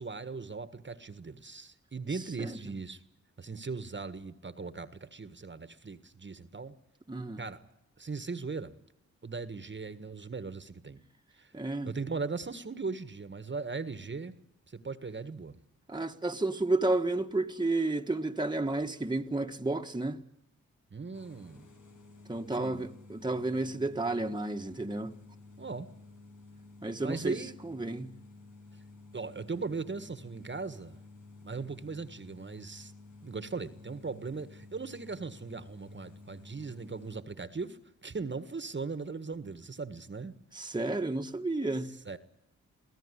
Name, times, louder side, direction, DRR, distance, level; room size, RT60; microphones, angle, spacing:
voice 1, 0.0-3.0 3.4-6.8 7.4-7.7 8.0-8.7 9.2-11.0 11.4-11.5 11.8-14.4 14.7-15.6 20.9-21.7 22.5-22.9 25.6-25.9 27.0-27.6 29.1-31.0 31.4-32.9 33.2-40.3 41.8-42.2, right 4 dB, 35° right, 1.6 m, -39 dB
voice 2, 7.1-7.4 11.5-11.9 15.9-20.2 22.3-25.1 26.8-27.3 27.6-28.1 40.5-41.9, right 2 dB, 15° right, 1.5 m, -31 dB
sound 1, 21.1-37.2, left 3 dB, 80° left, 5.2 m, -53 dB
24.0 x 15.5 x 9.9 m
cardioid pair, 55°, 31 cm